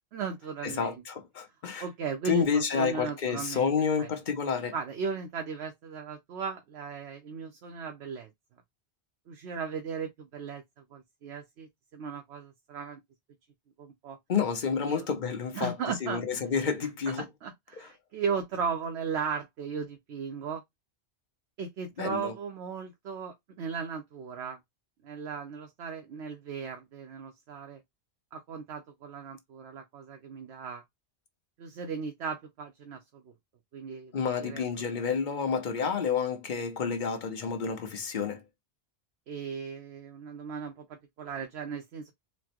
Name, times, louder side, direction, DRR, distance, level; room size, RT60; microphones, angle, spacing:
voice 1, 0.1-1.0 1.8-3.7 4.0-4.1 4.7-8.3 9.3-10.6 10.9-13.0 13.8-14.2 14.9-15.1 15.5-16.2 17.2-20.6 21.6-24.6 25.0-27.8 28.3-30.8 31.6-33.2 33.7-34.1 34.4-34.6 34.9-35.0 39.3-42.1, right 6 dB, 85° right, 0.9 m, -36 dB
voice 2, 0.6-1.9 2.2-4.7 14.3-15.7 16.0-17.2 17.8-17.9 22.0-22.3 34.1-38.4, left 6 dB, 50° left, 0.8 m, -29 dB
4.2 x 2.1 x 2.8 m
omnidirectional pair, 1.1 m